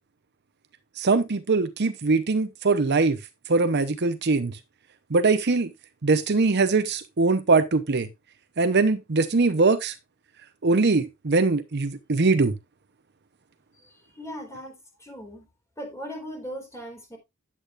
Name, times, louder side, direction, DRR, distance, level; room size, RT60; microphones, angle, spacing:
voice 1, 1.0-3.2 3.5-4.6 5.1-5.7 6.0-8.1 8.6-9.9 10.6-12.5, right 3 dB, 55° right, 0.8 m, -22 dB
voice 2, 14.2-15.5 15.8-17.2, equal, 15° left, 4.0 m, -38 dB
10.5 x 8.4 x 2.5 m
head